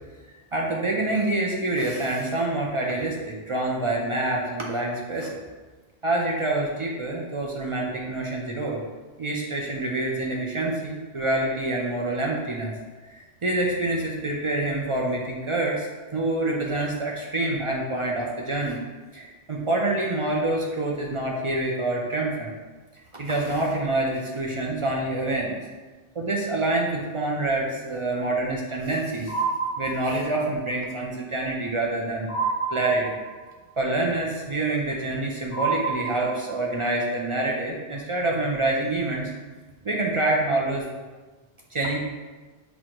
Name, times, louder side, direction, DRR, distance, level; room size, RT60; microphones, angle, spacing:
voice 1, 0.5-5.4 6.0-8.8 9.2-12.7 13.0-18.8 19.1-22.5 23.1-25.6 26.1-29.3 29.8-33.2 33.8-39.3 39.8-40.9 41.7-42.0, right 2 dB, 55° right, -2 dB, 0.3 m, -26 dB
sound 1, 29.3-30.5 32.3-33.5 35.5-36.8, right 4 dB, 90° left, 1.1 m, -29 dB
6.1 x 2.6 x 2.9 m, 1.3 s
omnidirectional pair, 1.2 m